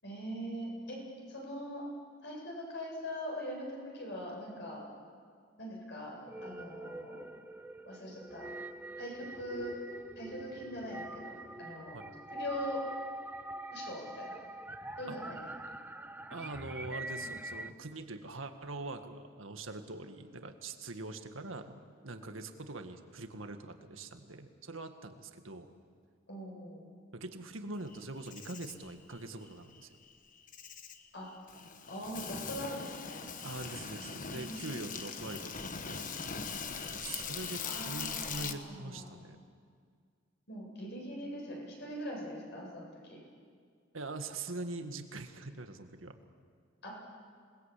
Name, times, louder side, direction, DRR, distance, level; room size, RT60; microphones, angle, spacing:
voice 1, 0.0-1.0 1.3-1.8 2.2-4.8 5.6-7.2 7.9-8.5 8.9-9.7 10.1-12.0 12.3-12.8 13.7-14.4 15.0-15.4 26.3-26.9 31.1-31.3 31.9-33.2 33.9-34.7 37.6-39.1 40.5-43.2 46.8-46.9, equal, 60° left, -1 dB, 7.8 m, -42 dB
sound 1, 6.2-17.7, right 1 dB, 10° right, 0.6 m, -44 dB
voice 2, 16.3-25.7 27.1-29.9 33.4-36.1 36.9-39.4 43.9-46.2, right 2 dB, 85° right, 7 dB, 1.8 m, -43 dB
Insect, 27.9-38.5, left 6 dB, 40° left, 1.3 m, -41 dB
27.0 x 20.5 x 8.5 m, 2.1 s
head